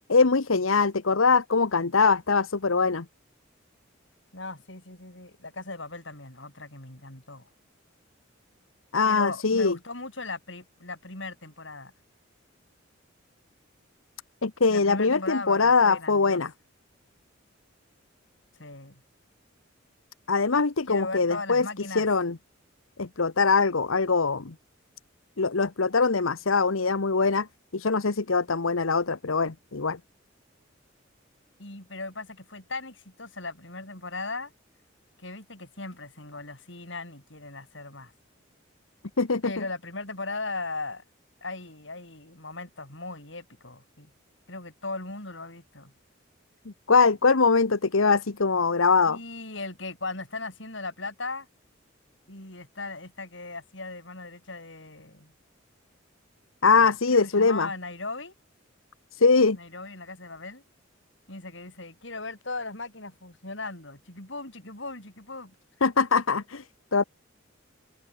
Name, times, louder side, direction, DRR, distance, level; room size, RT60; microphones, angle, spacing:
voice 1, 0.1-3.0 8.9-9.8 14.4-16.5 20.3-21.7 21.9-22.4 23.0-24.5 25.4-27.5 27.7-30.0 39.2-39.5 46.9-49.2 56.6-57.7 59.1-59.6 65.8-66.6 66.9-67.0, left 4 dB, 85° left, 1.1 m, -22 dB
voice 2, 4.3-7.5 9.1-11.9 14.7-16.4 18.6-19.0 20.9-22.1 31.6-34.5 35.2-38.1 39.4-41.0 41.4-44.1 44.5-45.9 49.1-51.5 52.3-55.3 56.7-58.3 59.5-60.6 61.3-65.6, left 3 dB, 65° left, 7.5 m, -38 dB
head